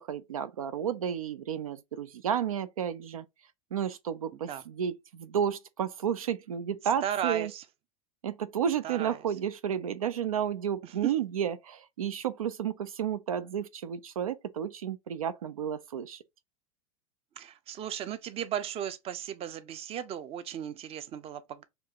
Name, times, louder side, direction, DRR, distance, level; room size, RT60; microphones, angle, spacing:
voice 1, 0.0-3.2 3.7-7.5 8.2-16.2, right 8 dB, 80° right, 0.4 m, -32 dB
voice 2, 7.0-7.6 8.8-9.2 10.8-11.1 17.4-21.6, right 9 dB, 35° right, 0.6 m, -35 dB
4.7 x 2.5 x 2.9 m
hypercardioid pair, 90°, 18 cm